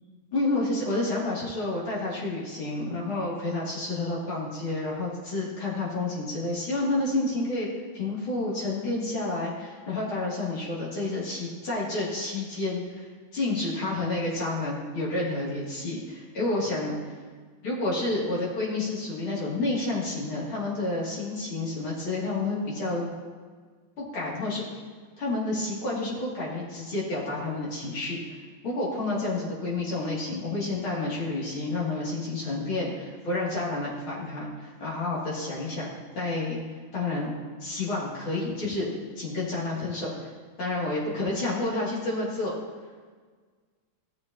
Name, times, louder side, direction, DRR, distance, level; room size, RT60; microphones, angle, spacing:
voice 1, 0.3-7.7 7.9-17.0 17.6-23.1 24.1-24.6 25.2-28.4 28.6-36.6 36.9-37.3 37.6-38.9 39.2-40.3 40.6-42.5, left 2 dB, 80° left, -6 dB, 3.2 m, -30 dB
15.5 x 6.6 x 2.7 m, 1.5 s
omnidirectional pair, 2.2 m